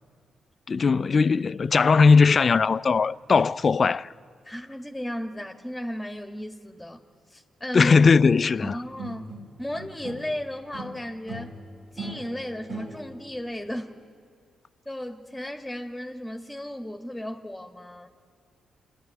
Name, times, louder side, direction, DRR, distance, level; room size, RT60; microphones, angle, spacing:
voice 1, 0.7-4.1 7.7-8.8, left 5 dB, 50° left, 0.4 m, -19 dB
voice 2, 4.4-8.0 8.6-9.3 9.6-11.6 11.9-13.9 14.8-18.1, equal, 5° left, 1.6 m, -35 dB
sound 1, 8.6-10.4 10.7-13.3, right 2 dB, 70° right, 4.0 m, -40 dB
28.0 x 11.0 x 9.1 m
supercardioid pair, 50°, 0 cm